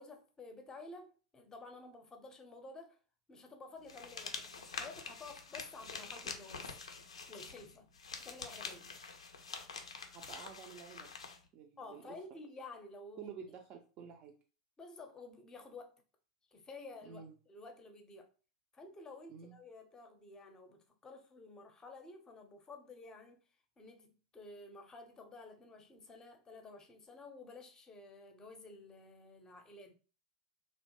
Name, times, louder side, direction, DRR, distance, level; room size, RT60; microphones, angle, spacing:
voice 1, 0.0-3.0 3.3-6.7 7.3-8.9 11.8-13.3 14.8-16.0 16.5-18.3 18.7-23.4 23.8-29.9, left 3 dB, 20° left, 0.6 m, -52 dB
sound 1, 3.9-11.4, left 5 dB, 75° left, 0.4 m, -46 dB
voice 2, 10.1-11.1 11.5-12.2 13.2-14.3 17.0-17.3 19.3-19.6, right 7 dB, 35° right, 0.4 m, -50 dB
2.7 x 2.1 x 2.9 m
figure-of-eight pair, 90°, 3 cm